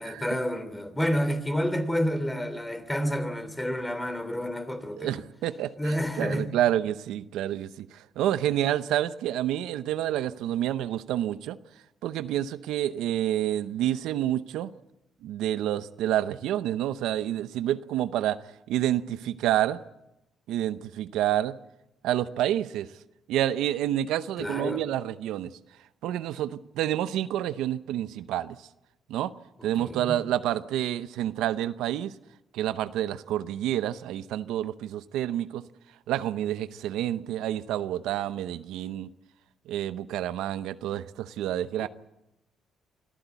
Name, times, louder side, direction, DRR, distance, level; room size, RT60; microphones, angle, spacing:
voice 1, 0.0-5.2 5.8-6.5 24.4-24.8 29.6-30.2 41.8-41.9, equal, 10° left, 3.1 m, -29 dB
voice 2, 4.9-11.6 12.0-14.7 15.2-18.4 18.7-19.8 20.5-21.6 22.0-22.9 23.3-25.5 26.0-28.7 29.1-29.3 29.6-32.1 32.5-35.6 36.1-39.1 39.7-41.9, right 12 dB, 90° right, 0.7 m, -28 dB
25.5 x 14.0 x 8.2 m
cardioid pair, 90°, 0 cm